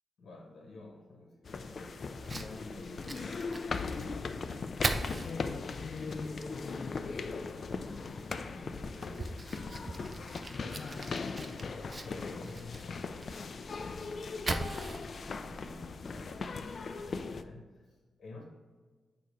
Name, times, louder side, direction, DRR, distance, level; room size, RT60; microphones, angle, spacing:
voice 1, 0.2-4.5 7.0-13.4 13.7-18.5, left 2 dB, 70° left, 1 dB, 1.0 m, -52 dB
sound 1, 1.4-17.4, left 4 dB, 50° left, 0.3 m, -39 dB
Fire, 2.1-16.7, right 2 dB, 30° right, 0.5 m, -42 dB
8.4 x 2.9 x 4.7 m, 1.4 s
wide cardioid pair, 115°, 0 cm